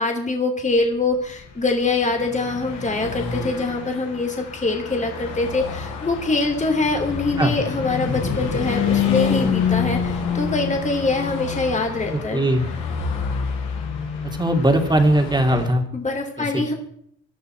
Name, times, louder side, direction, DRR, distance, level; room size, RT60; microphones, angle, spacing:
voice 1, 0.0-12.4 15.9-16.7, left 3 dB, 25° left, 3 dB, 2.9 m, -24 dB
Car passing by / Truck, 1.3-15.7, left 6 dB, 85° left, 7.0 m, -27 dB
voice 2, 12.1-12.7 14.3-15.9 16.4-16.7, right 1 dB, 15° right, 4 dB, 2.8 m, -20 dB
19.0 x 11.5 x 4.6 m, 0.67 s
cardioid pair, 90°, 30 cm